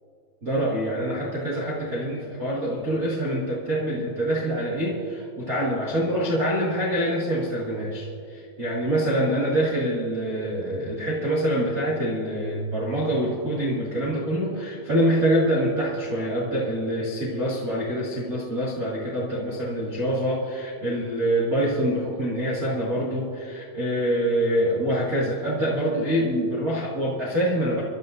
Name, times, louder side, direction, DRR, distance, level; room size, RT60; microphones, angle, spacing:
voice 1, 0.4-27.8, right 1 dB, 40° right, -7 dB, 1.3 m, -25 dB
26.5 x 12.5 x 2.6 m, 2.5 s
omnidirectional pair, 4.9 m